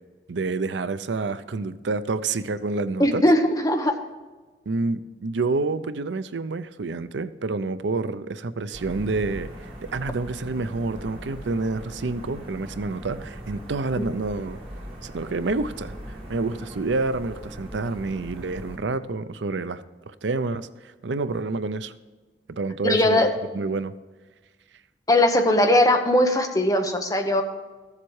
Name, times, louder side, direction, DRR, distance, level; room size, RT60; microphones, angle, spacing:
voice 1, 0.3-3.2 4.7-9.5 9.9-14.6 15.0-16.0 16.3-21.9 22.5-23.2 23.5-23.9, right 3 dB, 85° right, 13 dB, 0.6 m, -28 dB
voice 2, 3.0-4.0 22.8-23.3 25.1-27.4, left 1 dB, 20° left, 4 dB, 1.0 m, -19 dB
sound 1, 8.7-18.8, equal, 35° right, 3.5 m, -40 dB
14.5 x 7.4 x 4.7 m, 1.3 s
head